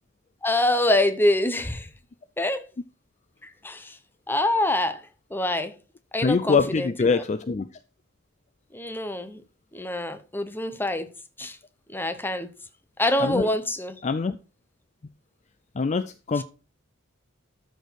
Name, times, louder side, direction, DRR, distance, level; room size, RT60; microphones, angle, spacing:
voice 1, 0.4-1.9 2.4-2.6 3.4-4.0 4.3-5.7 6.1-7.2 8.7-9.4 9.7-11.1 11.4-11.6 11.9-12.5 13.0-14.0 16.3-16.4, left 1 dB, 10° left, 0.8 m, -25 dB
voice 2, 6.2-7.7 13.2-13.5 14.0-14.4 15.8-16.4, left 4 dB, 35° left, 0.4 m, -24 dB
13.0 x 4.5 x 4.6 m
head